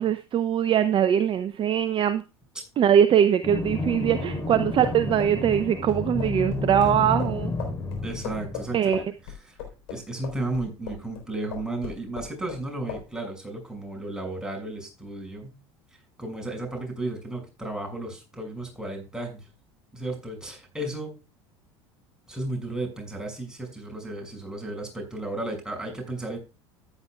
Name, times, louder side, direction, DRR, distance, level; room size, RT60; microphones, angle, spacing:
voice 1, 0.0-2.2 2.8-7.5 8.7-9.0, right 9 dB, 35° right, 12 dB, 0.7 m, -22 dB
sound 1, 3.4-8.8, left 2 dB, 25° left, 3.1 m, -31 dB
sound 2, 4.8-11.2 11.5-12.6 12.9-13.1, left 7 dB, 65° left, 3.9 m, -38 dB
voice 2, 8.0-9.6 9.9-15.5 16.2-19.4 19.9-21.1 22.3-26.4, right 2 dB, 5° right, 1 dB, 6.2 m, -34 dB
14.0 x 9.5 x 2.3 m, 0.29 s
figure-of-eight pair, 70°, 14 cm